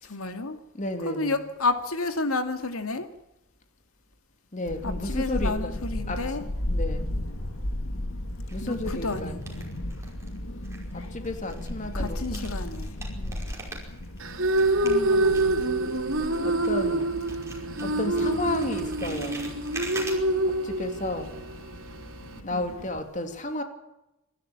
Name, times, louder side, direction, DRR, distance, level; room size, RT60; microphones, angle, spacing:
voice 1, 0.0-0.6 1.0-3.1 4.8-6.4 8.6-9.7 11.9-13.0 14.8-15.5 22.5-22.8, left 3 dB, 85° left, 7 dB, 2.3 m, -31 dB
voice 2, 0.7-1.3 4.5-6.2 6.7-7.1 8.5-9.4 10.9-12.5 13.2-13.6 16.0-17.1 17.8-19.5 20.6-21.3 22.4-23.6, left 1 dB, 35° left, 6 dB, 2.9 m, -33 dB
Child speech kid speaking / Wind, 4.6-23.0, left 1 dB, 70° left, 2.1 m, -35 dB
sound 1, 7.3-7.9 8.5-10.4 10.6-17.0 17.3-20.2, right 3 dB, 15° right, 5.3 m, -43 dB
sound 2, 14.2-22.4, right 2 dB, 65° right, 3.1 m, -26 dB
27.0 x 12.5 x 8.8 m, 0.91 s
head